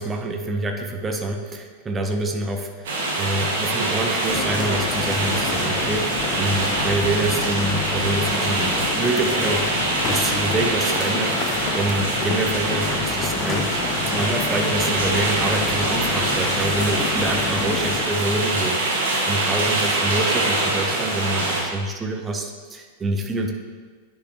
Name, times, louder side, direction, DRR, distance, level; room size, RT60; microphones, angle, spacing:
voice 1, 0.0-9.8 10.1-18.8 19.3-23.5, right 2 dB, 20° right, 3 dB, 0.8 m, -26 dB
sound 1, 2.9-21.6, right 2 dB, 55° right, 1.6 m, -24 dB
sound 2, 4.3-18.0, left 7 dB, 30° left, 0.4 m, -29 dB
9.7 x 5.5 x 2.9 m, 1.5 s
figure-of-eight pair, 90°, 0 cm